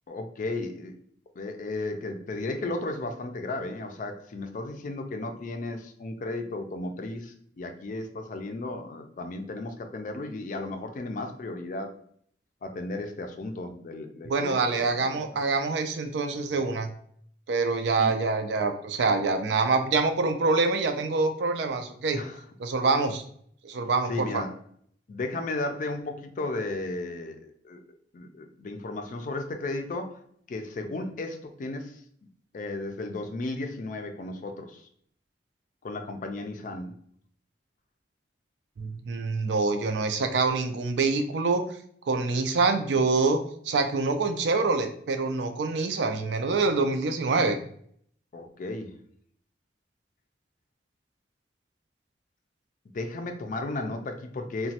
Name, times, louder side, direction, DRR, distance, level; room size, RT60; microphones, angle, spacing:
voice 1, 0.1-0.9 1.4-12.0 12.6-15.2 16.5-16.6 18.0-18.1 22.1-22.4 24.1-24.5 25.1-27.8 28.1-30.2 30.5-32.0 32.5-34.9 35.8-36.9 48.3-49.0 52.9-54.7, left 2 dB, 45° left, 6 dB, 0.4 m, -34 dB
voice 2, 14.3-16.9 17.5-22.2 22.6-23.2 23.6-24.4 38.8-41.6 42.1-47.6, right 3 dB, 75° right, 7 dB, 0.4 m, -25 dB
3.0 x 2.1 x 2.8 m, 0.63 s
head